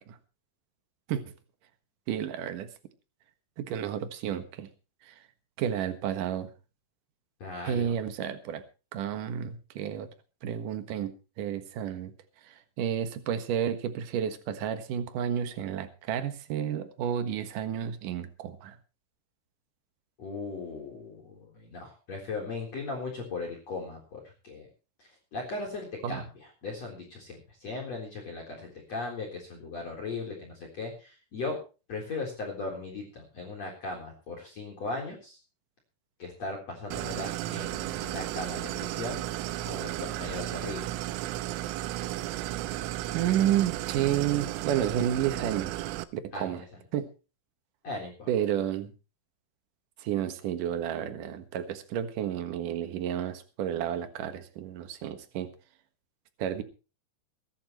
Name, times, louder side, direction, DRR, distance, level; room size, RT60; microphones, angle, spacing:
voice 1, 2.1-2.7 3.6-4.7 5.0-5.2 5.6-6.5 7.6-8.6 8.9-10.1 10.4-11.1 11.4-12.1 12.4-18.8 26.0-26.2 43.1-46.6 46.9-47.1 48.3-48.9 50.0-55.5 56.4-56.6, right 10 dB, 65° right, 9 dB, 2.2 m, -31 dB
voice 2, 7.4-7.9 20.2-24.7 25.0-31.6 31.9-35.4 36.2-39.2 39.6-41.1 46.3-46.6 47.8-48.3, left 3 dB, 35° left, 1 dB, 4.4 m, -38 dB
Idling, 36.9-46.0, right 15 dB, 85° right, 3.4 m, -34 dB
23.0 x 11.5 x 3.1 m, 0.33 s
omnidirectional pair, 5.6 m